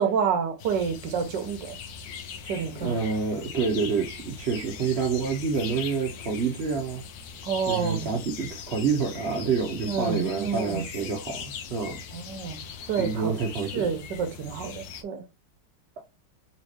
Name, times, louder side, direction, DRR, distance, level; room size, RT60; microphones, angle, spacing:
voice 1, 0.0-1.8 2.5-3.0 7.5-8.1 9.9-10.8 12.1-12.6 12.9-13.3 13.7-15.2, right 6 dB, 80° right, 1.5 m, -28 dB
sound 1, 0.6-15.0, left 6 dB, 80° left, 1.4 m, -40 dB
voice 2, 2.4-7.0 7.7-12.0 13.0-13.9, right 5 dB, 55° right, 0.7 m, -28 dB
4.3 x 2.8 x 3.0 m
omnidirectional pair, 1.9 m